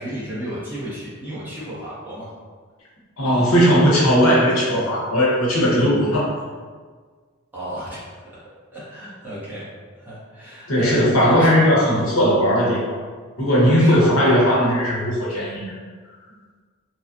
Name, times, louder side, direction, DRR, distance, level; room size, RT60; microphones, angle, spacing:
voice 1, 0.0-2.3 7.5-8.4 8.7-9.7 9.9-11.6 13.8-14.2, right 1 dB, 10° right, -11 dB, 1.1 m, -33 dB
voice 2, 3.2-6.2 10.7-13.0 13.4-15.8, equal, 75° left, -6 dB, 1.0 m, -17 dB
3.1 x 2.4 x 2.5 m, 1.5 s
head